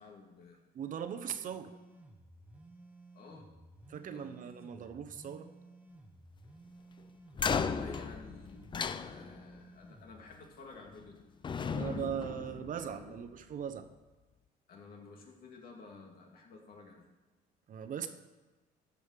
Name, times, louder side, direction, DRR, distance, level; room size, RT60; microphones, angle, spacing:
voice 1, 0.0-0.6 1.4-1.6 3.1-3.5 4.1-4.4 4.7-4.9 7.5-11.2 11.5-13.3 14.7-17.1, left 4 dB, 60° left, 1 dB, 2.4 m, -53 dB
voice 2, 0.7-1.7 3.9-5.5 11.7-13.9 17.7-18.1, right 8 dB, 50° right, 9 dB, 0.9 m, -39 dB
sound 1, 1.7-10.2, right 2 dB, 10° right, 1.1 m, -56 dB
sound 2, 7.3-9.6 10.8-11.1 11.4-13.2, left 6 dB, 30° left, 0.5 m, -36 dB
13.5 x 5.3 x 6.6 m, 1.2 s
cardioid pair, 110°, 17 cm